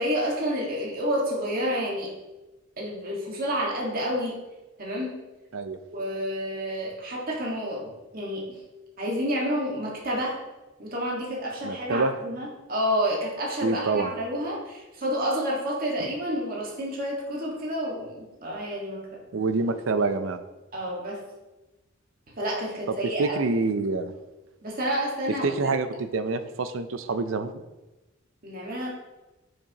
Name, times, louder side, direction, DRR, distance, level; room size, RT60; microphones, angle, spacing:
voice 1, 0.0-2.1 2.8-4.4 4.8-5.2 5.9-8.6 9.0-10.4 10.8-19.2 20.7-21.2 22.4-23.4 24.6-25.7 28.4-28.9, equal, 45° right, -3 dB, 1.7 m, -29 dB
voice 2, 11.6-12.1 13.6-14.1 16.0-16.1 19.3-20.4 23.0-24.1 25.4-27.6, right 3 dB, 75° right, 11 dB, 0.5 m, -26 dB
8.3 x 6.6 x 2.9 m, 1.1 s
head